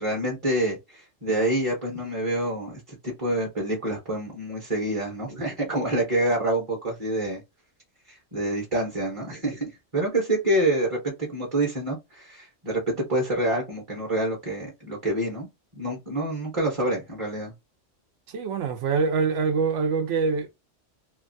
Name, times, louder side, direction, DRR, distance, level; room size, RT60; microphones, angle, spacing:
voice 1, 0.0-7.4 8.1-15.5 15.8-17.5, right 1 dB, 30° right, 0.9 m, -27 dB
voice 2, 18.3-20.5, right 5 dB, 80° right, 1.0 m, -24 dB
3.0 x 2.3 x 2.6 m
omnidirectional pair, 1.2 m